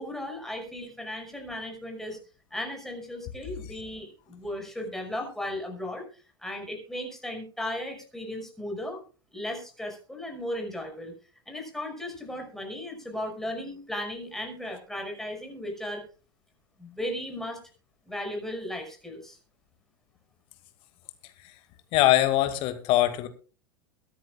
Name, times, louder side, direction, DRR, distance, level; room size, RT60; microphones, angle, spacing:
voice 1, 0.0-2.2 2.5-6.0 6.4-9.0 9.3-11.1 11.5-16.0 16.8-17.6 18.1-19.4, left 1 dB, 5° left, 2 dB, 5.7 m, -36 dB
voice 2, 21.9-23.3, left 14 dB, 45° left, 9 dB, 2.2 m, -22 dB
22.0 x 10.5 x 2.4 m, 0.37 s
figure-of-eight pair, 85°, 13 cm